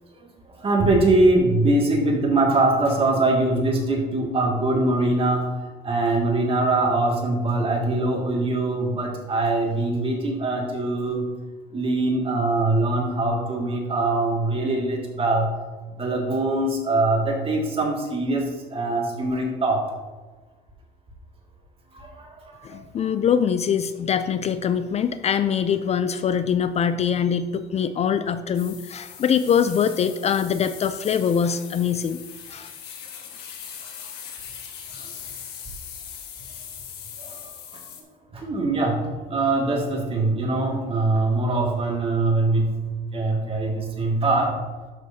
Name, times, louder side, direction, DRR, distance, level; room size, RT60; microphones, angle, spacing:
voice 1, 0.5-5.5 5.8-11.3 11.7-15.5 15.9-19.8 21.9-22.8 34.9-35.1 37.2-37.5 38.3-44.6, right 2 dB, 35° right, 0 dB, 2.1 m, -23 dB
voice 2, 22.6-32.2 32.5-32.7, left 7 dB, 40° left, 11 dB, 0.4 m, -23 dB
sound 1, 28.5-38.0, left 8 dB, 80° left, 1.5 m, -40 dB
12.0 x 6.5 x 2.8 m, 1.3 s
cardioid pair, 110°, 17 cm